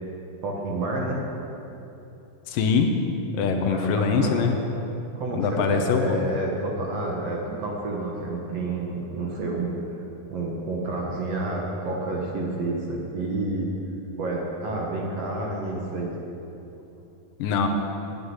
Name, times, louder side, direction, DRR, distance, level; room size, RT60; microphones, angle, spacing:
voice 1, 0.4-1.2 3.7-4.5 5.2-9.7 10.3-13.7 14.2-16.1, right 2 dB, 55° right, -1 dB, 2.1 m, -29 dB
voice 2, 2.5-3.0 3.3-4.6 5.3-6.2 17.4-17.7, left 5 dB, 75° left, 4 dB, 2.6 m, -23 dB
9.9 x 8.9 x 9.6 m, 2.9 s
omnidirectional pair, 4.1 m